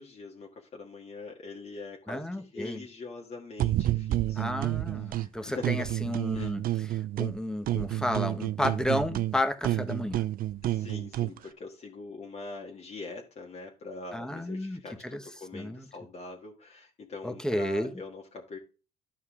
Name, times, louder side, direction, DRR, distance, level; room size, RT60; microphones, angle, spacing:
voice 1, 0.0-4.5 5.1-5.9 6.3-6.6 10.6-18.6, left 3 dB, 40° left, -1 dB, 1.7 m, -43 dB
voice 2, 2.1-2.8 4.4-10.2 14.1-14.8 15.1-15.2 15.5-15.9 17.2-17.9, left 1 dB, 5° left, 8 dB, 1.1 m, -32 dB
sound 1, 3.6-5.3 5.6-7.4 7.7-11.4, right 14 dB, 60° right, 0.6 m, -30 dB
11.5 x 5.5 x 3.7 m, 0.33 s
cardioid pair, 110°, 17 cm